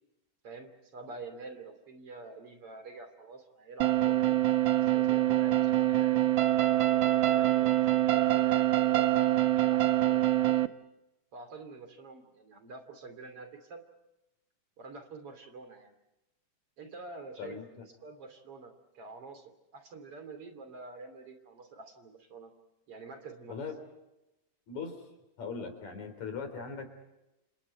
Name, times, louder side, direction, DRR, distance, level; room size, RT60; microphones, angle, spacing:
voice 1, 0.4-4.4 4.8-9.2 9.5-10.6 11.3-13.8 14.8-15.9 16.8-22.5 22.9-23.6, right 3 dB, 50° right, 8 dB, 3.7 m, -47 dB
sound 1, 3.8-10.7, right 14 dB, 90° right, 1.0 m, -25 dB
voice 2, 17.4-17.9 23.5-23.8 24.7-25.1 25.4-27.0, left 5 dB, 65° left, 8 dB, 4.9 m, -40 dB
30.0 x 28.0 x 4.5 m, 0.94 s
omnidirectional pair, 3.5 m